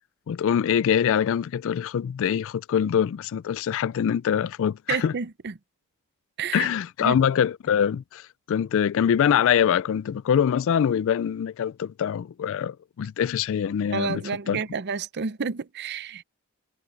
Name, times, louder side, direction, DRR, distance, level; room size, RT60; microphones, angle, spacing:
voice 1, 0.3-5.1 6.5-14.2 14.5-14.6, left 8 dB, 60° left, 0.3 m, -24 dB
voice 2, 4.9-5.5 6.4-6.7 7.0-7.2 13.9-16.2, right 5 dB, 50° right, 0.6 m, -30 dB
head